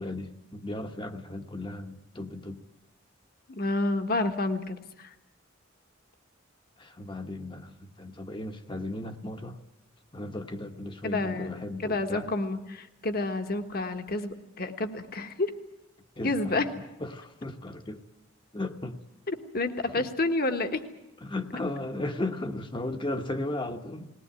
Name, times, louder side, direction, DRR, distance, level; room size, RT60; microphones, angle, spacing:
voice 1, 0.0-2.6 6.8-9.6 10.1-12.3 16.2-16.7 17.0-18.0 18.5-19.0 20.0-20.1 21.2-24.1, left 2 dB, 25° left, 6 dB, 1.1 m, -35 dB
voice 2, 3.5-5.1 11.0-15.5 16.2-16.7 19.3-20.8, left 2 dB, 50° left, 7 dB, 1.5 m, -29 dB
20.0 x 18.5 x 9.8 m, 0.92 s
head